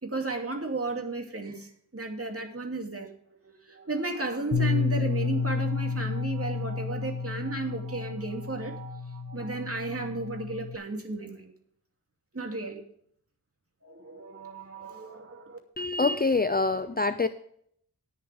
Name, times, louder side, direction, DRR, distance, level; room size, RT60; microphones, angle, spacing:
voice 1, 0.0-11.5 12.3-12.8 13.8-15.6, right 2 dB, 35° right, 2 dB, 2.7 m, -34 dB
Bass guitar, 4.5-10.8, left 4 dB, 80° left, 1.8 m, -31 dB
voice 2, 15.8-17.3, left 3 dB, 25° left, 11 dB, 0.5 m, -25 dB
19.0 x 7.2 x 3.5 m, 0.65 s
wide cardioid pair, 70°, 40 cm